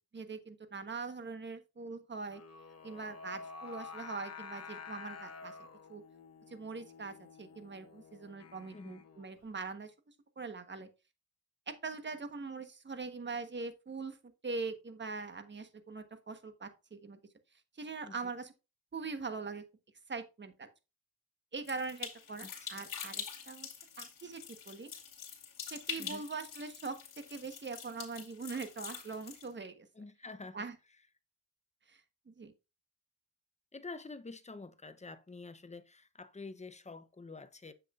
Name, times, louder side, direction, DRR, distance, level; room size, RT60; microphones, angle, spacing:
voice 1, 0.1-2.4 2.8-5.5 5.9-6.0 6.5-9.9 10.4-10.9 11.7-14.2 14.4-17.2 17.8-18.5 18.9-19.6 20.1-20.7 21.5-23.7 24.0-24.9 25.7-29.9 30.5-30.7 31.9-32.0 32.3-32.5, right 4 dB, 35° right, 1.3 m, -42 dB
Singing, 2.3-9.4, left 5 dB, 50° left, 1.1 m, -49 dB
sound 1, 21.6-29.5, left 7 dB, 75° left, 2.5 m, -45 dB
voice 2, 22.4-22.8 26.0-26.3 29.9-30.7 33.7-37.7, left 3 dB, 20° left, 0.8 m, -48 dB
7.6 x 6.6 x 2.5 m
cardioid pair, 80°, 32 cm